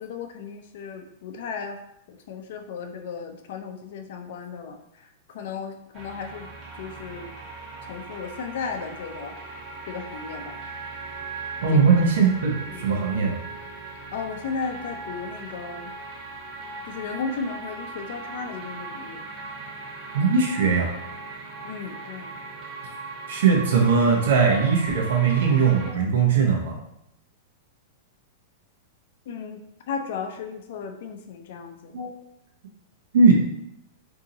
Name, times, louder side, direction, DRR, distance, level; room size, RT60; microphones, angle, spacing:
voice 1, 0.0-1.8 2.1-6.5 6.8-7.3 7.9-9.3 9.9-10.6 12.7-12.8 14.1-15.9 16.9-19.2 21.6-22.3 29.3-29.6 29.9-32.0, left 5 dB, 60° left, 5 dB, 0.5 m, -35 dB
sound 1, 5.9-25.9, right 3 dB, 30° right, 1.0 m, -39 dB
voice 2, 11.6-13.4 20.1-20.9 23.3-26.7 31.9-32.1 33.1-33.3, right 5 dB, 80° right, 0 dB, 0.8 m, -20 dB
3.7 x 2.7 x 2.7 m, 0.79 s
supercardioid pair, 150°, 0 cm